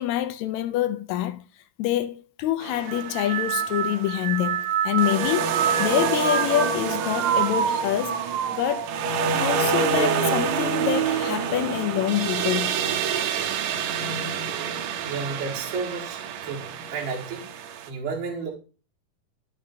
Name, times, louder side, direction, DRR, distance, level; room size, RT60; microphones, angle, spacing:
voice 1, 0.0-1.4 1.8-8.2 8.5-8.9 9.4-12.8, left 13 dB, 80° left, 1.7 m, -26 dB
sound 1, 2.6-4.1 5.0-17.9, right 6 dB, 90° right, 2.4 m, -28 dB
sound 2, 2.9-12.5 12.9-13.5 14.5-14.8, right 8 dB, 70° right, 2.0 m, -29 dB
voice 2, 15.0-17.5 17.9-18.5, right 4 dB, 50° right, 2.3 m, -32 dB
13.5 x 5.5 x 2.7 m
omnidirectional pair, 3.7 m